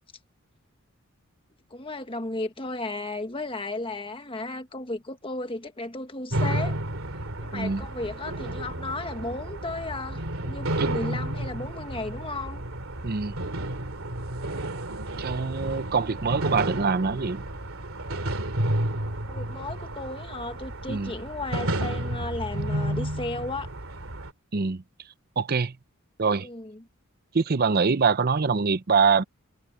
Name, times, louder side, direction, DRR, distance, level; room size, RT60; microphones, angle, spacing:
voice 1, 1.7-6.8 7.4-12.6 19.3-23.7 26.4-26.9, left 2 dB, 25° left, 1.5 m, -34 dB
sound 1, 6.3-24.3, right 1 dB, 70° right, 2.7 m, -31 dB
voice 2, 13.0-13.4 15.2-17.4 20.9-21.1 24.5-24.8 25.4-25.7 26.2-26.5 27.3-29.2, right 5 dB, 45° right, 0.6 m, -24 dB
head